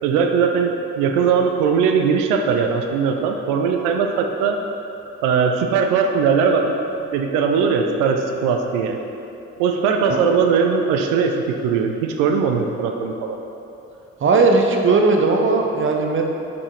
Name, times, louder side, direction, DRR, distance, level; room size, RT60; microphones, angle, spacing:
voice 1, 0.0-4.6 5.2-6.8 7.1-9.0 9.6-13.4, right 6 dB, 65° right, 4 dB, 0.6 m, -19 dB
voice 2, 14.2-16.2, right 3 dB, 35° right, 2 dB, 0.8 m, -17 dB
5.6 x 4.8 x 4.1 m, 2.9 s
figure-of-eight pair, 45°, 35 cm